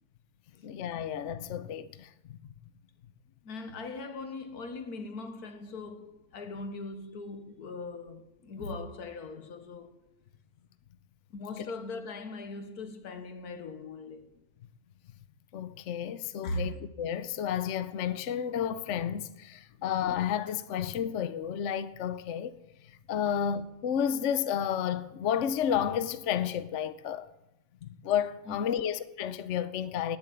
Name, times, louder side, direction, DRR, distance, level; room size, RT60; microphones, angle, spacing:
voice 1, 0.6-2.1 15.5-22.5 23.1-27.3 27.8-30.2, left 9 dB, 60° left, 1.0 m, -31 dB
voice 2, 3.4-10.0 11.3-14.3 16.4-16.8 23.3-23.4 28.5-28.6, left 2 dB, 90° left, 1.8 m, -40 dB
18.5 x 7.2 x 9.1 m
omnidirectional pair, 1.6 m